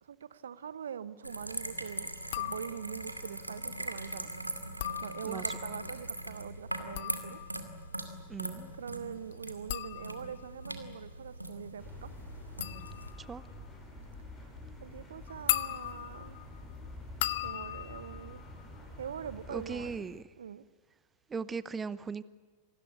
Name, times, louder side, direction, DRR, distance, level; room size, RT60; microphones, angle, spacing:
voice 1, 0.0-2.1 2.4-4.3 5.0-7.4 8.7-12.1 14.8-16.4 17.4-18.4 19.0-19.9 20.4-20.6, right 8 dB, 65° right, 18 dB, 0.9 m, -43 dB
sound 1, 1.2-13.1, right 1 dB, 85° right, 2.3 m, -41 dB
sound 2, 2.2-3.1 4.6-5.7 6.7-19.4 19.7-20.2, left 15 dB, 55° left, 0.9 m, -39 dB
voice 2, 5.2-5.6 8.3-8.7 13.2-13.4 19.5-20.3 21.3-22.2, right 5 dB, 15° right, 19 dB, 0.7 m, -38 dB
sound 3, 11.8-20.0, left 2 dB, 10° left, 7.3 m, -48 dB
27.0 x 20.5 x 8.5 m, 1.4 s
figure-of-eight pair, 90°, 0 cm